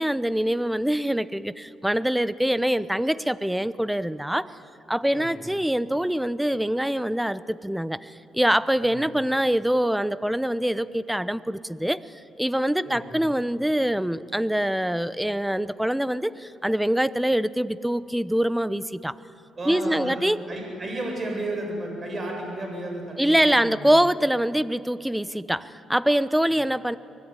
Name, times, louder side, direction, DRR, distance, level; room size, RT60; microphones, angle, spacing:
voice 1, 0.0-4.5 4.9-12.0 12.4-19.2 19.7-20.4 23.2-27.0, equal, 5° right, 16 dB, 0.8 m, -24 dB
voice 2, 5.1-5.5 8.8-9.0 12.9-13.3 19.6-20.2 20.5-23.9 26.5-26.6, right 1 dB, 35° right, 1 dB, 7.6 m, -33 dB
25.0 x 20.0 x 9.9 m, 2.6 s
cardioid pair, 90°, 0 cm